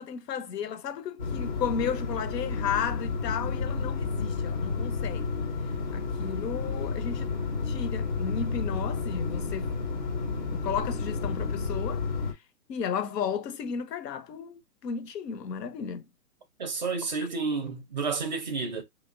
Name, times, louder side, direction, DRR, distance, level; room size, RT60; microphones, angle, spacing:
voice 1, 0.0-5.3 5.9-7.3 7.7-9.7 10.3-12.0 12.7-16.0, left 7 dB, 80° left, 0.7 m, -34 dB
sound 1, 1.2-12.3, left 4 dB, 30° left, 0.5 m, -31 dB
voice 2, 16.6-18.8, right 4 dB, 30° right, 0.5 m, -30 dB
2.9 x 2.0 x 2.4 m
hypercardioid pair, 150°, 48 cm